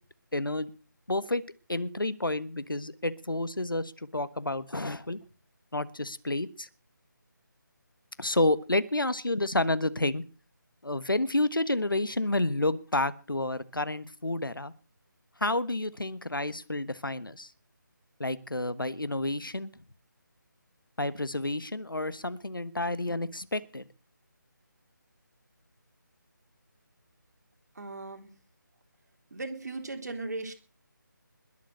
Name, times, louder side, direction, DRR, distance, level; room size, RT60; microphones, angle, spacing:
voice 1, 0.3-0.7 1.1-1.4 1.7-5.2 5.7-6.7 8.2-10.2 10.8-14.7 15.4-17.5 18.2-19.7 21.0-23.9, left 2 dB, 85° left, 15 dB, 1.4 m, -30 dB
voice 2, 27.8-28.3 29.3-30.5, right 2 dB, 50° right, 5 dB, 3.5 m, -37 dB
21.0 x 7.6 x 6.5 m, 0.38 s
figure-of-eight pair, 155°, 11 cm